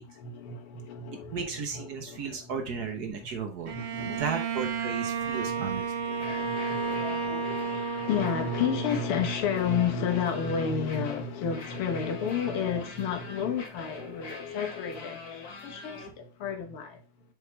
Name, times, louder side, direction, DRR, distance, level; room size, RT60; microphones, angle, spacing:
voice 1, 0.2-1.4 1.7-2.5 3.7-4.3 5.0-17.0, left 6 dB, 85° left, 2.1 m, -32 dB
voice 2, 1.3-5.8, right 5 dB, 55° right, 1.3 m, -35 dB
Bowed string instrument, 3.7-9.4, right 5 dB, 90° right, 0.5 m, -32 dB
sound 1, 6.1-16.1, left 4 dB, 50° left, 1.7 m, -42 dB
7.0 x 4.6 x 3.3 m
omnidirectional pair, 2.4 m